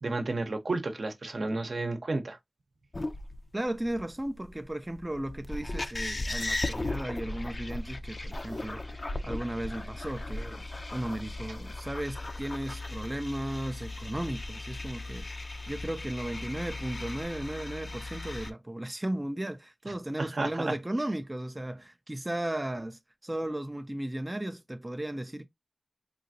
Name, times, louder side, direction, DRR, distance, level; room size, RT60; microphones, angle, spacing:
voice 1, 0.0-2.4 20.2-20.7, right 2 dB, 70° right, 0.7 m, -31 dB
sound 1, 2.9-18.5, left 2 dB, 45° left, 0.4 m, -37 dB
voice 2, 3.5-15.3 15.7-25.5, right 1 dB, 20° right, 0.3 m, -35 dB
3.9 x 2.4 x 2.6 m
wide cardioid pair, 55°, 0 cm